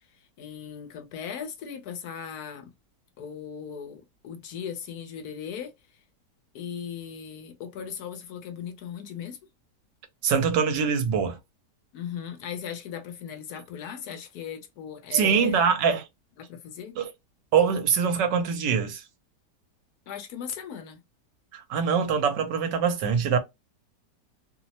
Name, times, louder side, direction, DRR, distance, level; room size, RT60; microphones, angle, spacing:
voice 1, 0.2-2.7 3.2-5.7 6.5-9.4 11.9-15.7 16.4-16.9 20.1-21.0, left 8 dB, 70° left, 1.0 m, -38 dB
voice 2, 10.2-11.4 15.1-16.0 17.0-17.1 17.5-19.0 21.5-23.4, right 6 dB, 85° right, 1.4 m, -23 dB
3.1 x 2.0 x 2.7 m
omnidirectional pair, 1.8 m